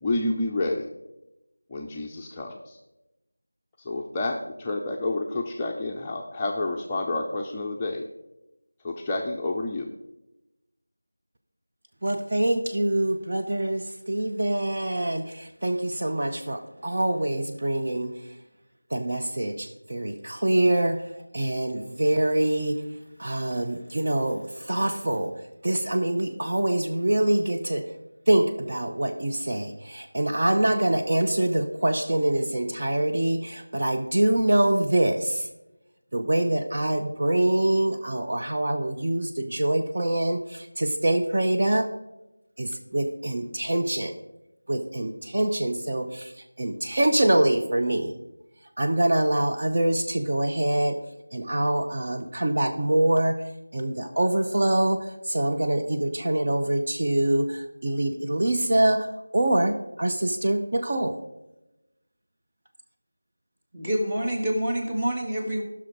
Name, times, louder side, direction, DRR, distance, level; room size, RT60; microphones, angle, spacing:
voice 1, 0.0-0.9 1.7-2.8 3.8-8.1 8.8-9.9, left 2 dB, 10° left, -1 dB, 0.5 m, -29 dB
voice 2, 12.0-18.4 18.9-22.9 23.2-27.9 28.3-35.5 36.1-41.9 42.6-44.1 44.7-48.1 48.8-51.0 51.3-53.4 53.7-61.2, right 1 dB, 45° right, 3 dB, 0.7 m, -25 dB
voice 3, 63.7-65.6, equal, 20° right, 1 dB, 1.5 m, -27 dB
14.0 x 6.1 x 4.6 m, 0.96 s
figure-of-eight pair, 170°, 0 cm